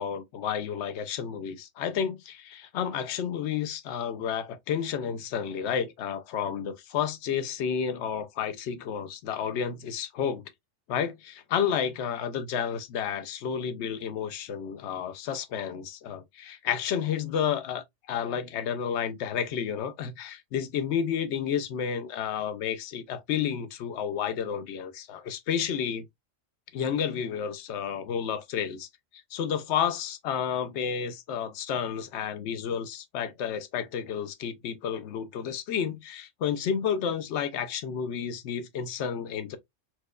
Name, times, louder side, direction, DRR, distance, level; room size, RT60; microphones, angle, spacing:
voice 1, 0.0-10.4 10.9-26.1 26.7-28.9 29.3-39.6, left 8 dB, 70° left, 0.9 m, -31 dB
4.4 x 2.1 x 2.2 m
omnidirectional pair, 1.3 m